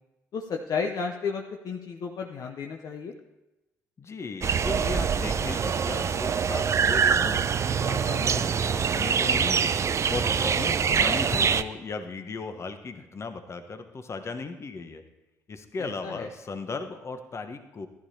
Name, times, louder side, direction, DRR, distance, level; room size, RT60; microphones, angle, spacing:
voice 1, 0.3-3.1 15.8-16.3, left 5 dB, 55° left, 2 dB, 0.7 m, -33 dB
voice 2, 4.0-7.5 7.8-9.7 10.1-15.0 15.5-17.9, left 4 dB, 40° left, 7 dB, 1.1 m, -36 dB
sound 1, 4.4-11.6, right 6 dB, 40° right, 0.5 m, -24 dB
14.5 x 11.5 x 2.8 m, 0.98 s
hypercardioid pair, 50°, 8 cm